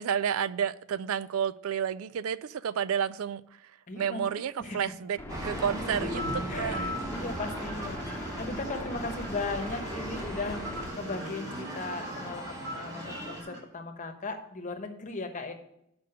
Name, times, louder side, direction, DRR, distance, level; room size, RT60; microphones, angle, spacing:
voice 1, 0.0-6.8, right 8 dB, 70° right, 0.4 m, -31 dB
voice 2, 3.9-4.8 6.5-15.5, left 3 dB, 35° left, 1.0 m, -37 dB
sound 1, 5.2-10.9, left 1 dB, 10° left, 1.0 m, -40 dB
sound 2, 5.3-13.4, right 1 dB, 15° right, 1.2 m, -38 dB
sound 3, 6.2-13.6, equal, 55° right, 2.3 m, -41 dB
6.8 x 5.2 x 6.6 m
head